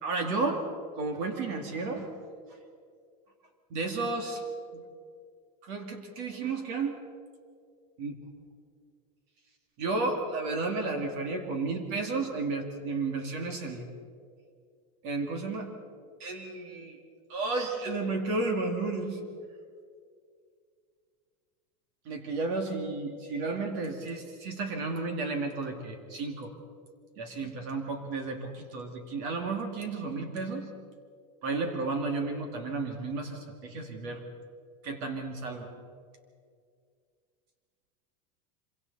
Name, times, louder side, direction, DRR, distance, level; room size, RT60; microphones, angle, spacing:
voice 1, 0.0-0.6 1.0-2.1 3.7-4.4 4.7-4.8 5.6-6.9 8.0-8.1 9.8-13.9 15.0-15.7 16.2-17.0 17.3-19.2 22.1-26.5 27.2-30.7 31.4-34.3 34.8-35.7, right 3 dB, 50° right, 4 dB, 2.6 m, -32 dB
26.0 x 24.5 x 4.2 m, 2.2 s
supercardioid pair, 170°, 21 cm